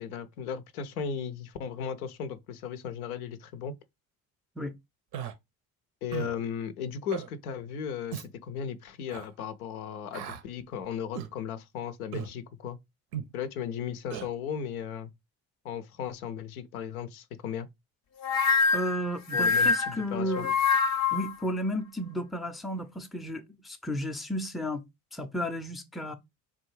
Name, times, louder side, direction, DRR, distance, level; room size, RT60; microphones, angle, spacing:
voice 1, 0.0-3.7 6.0-12.8 13.3-15.1 15.6-17.7 19.3-20.5, left 7 dB, 85° left, 0.5 m, -36 dB
Human voice, 5.1-5.3 6.1-6.4 7.1-7.3 8.1-8.3 9.1-9.3 10.1-10.4 11.1-11.3 12.1-12.3 13.1-13.3 14.1-14.3, right 9 dB, 65° right, 0.7 m, -36 dB
sound 1, 18.2-21.3, left 5 dB, 40° left, 0.6 m, -25 dB
voice 2, 18.7-20.6 21.1-24.8 25.1-26.1, equal, ahead, 0.4 m, -33 dB
3.6 x 2.3 x 3.1 m
hypercardioid pair, 60°, 42 cm